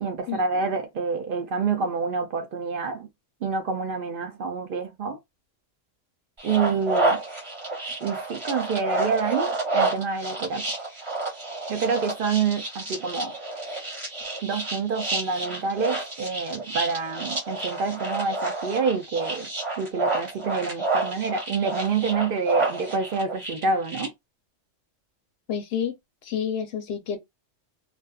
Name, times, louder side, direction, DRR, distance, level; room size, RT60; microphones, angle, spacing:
voice 1, 0.0-3.1 3.4-5.2 6.4-7.2 8.0-10.6 11.7-13.3 14.4-19.5 19.8-24.1, right 5 dB, 65° right, 0.5 m, -27 dB
sound 1, 6.4-24.1, right 2 dB, 25° right, 0.9 m, -29 dB
voice 2, 25.5-25.9 26.2-27.2, left 8 dB, 65° left, 0.7 m, -29 dB
2.5 x 2.4 x 2.3 m
omnidirectional pair, 1.3 m